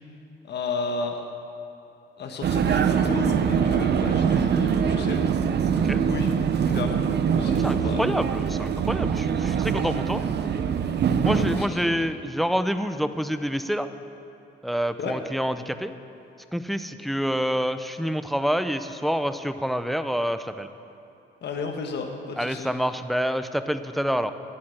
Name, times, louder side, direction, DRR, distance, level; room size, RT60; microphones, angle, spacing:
voice 1, 0.5-1.2 2.2-5.2 6.1-6.3 6.7-7.0 7.4-8.0 11.3-11.8 15.0-15.1 21.4-22.7, left 4 dB, 60° left, 3 dB, 1.4 m, -32 dB
Vehicle, 2.4-11.7, right 7 dB, 60° right, 0.8 m, -23 dB
voice 2, 7.4-10.2 11.2-13.9 14.6-16.0 16.5-20.7 22.4-24.3, equal, ahead, 10 dB, 0.6 m, -27 dB
11.0 x 8.7 x 7.7 m, 2.9 s
cardioid pair, 90°, 20 cm